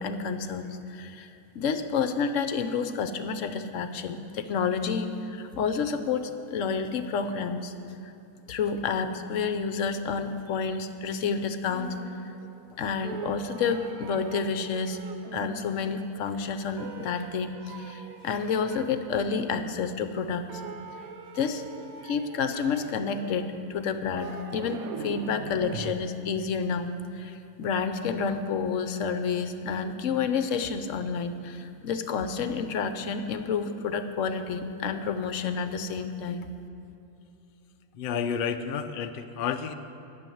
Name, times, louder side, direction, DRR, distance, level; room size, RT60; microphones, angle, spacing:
voice 1, 0.0-7.7 8.0-8.1 8.5-12.0 12.8-15.0 15.3-20.6 21.3-21.6 22.0-36.5, left 5 dB, 60° left, 9 dB, 0.9 m, -29 dB
sound 1, 11.7-12.8 13.0-16.3 16.8-20.2 20.5-26.0, right 6 dB, 65° right, 1.1 m, -42 dB
voice 2, 37.9-39.7, left 7 dB, 80° left, 7 dB, 0.4 m, -30 dB
12.0 x 7.1 x 9.3 m, 2.8 s
omnidirectional pair, 1.7 m